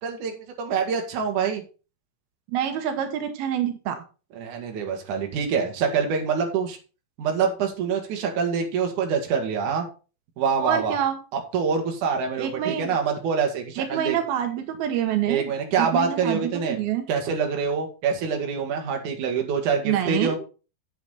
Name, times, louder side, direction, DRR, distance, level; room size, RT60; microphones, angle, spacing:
voice 1, 0.0-1.6 4.3-6.8 7.2-9.9 10.4-11.0 11.3-14.2 15.3-16.8 17.1-20.4, right 6 dB, 60° right, 2 dB, 3.1 m, -25 dB
voice 2, 2.5-4.0 10.6-11.2 12.4-12.9 13.8-15.5 15.8-17.1 19.8-20.4, right 10 dB, 85° right, 6 dB, 3.0 m, -26 dB
8.4 x 8.1 x 4.0 m, 0.34 s
omnidirectional pair, 4.2 m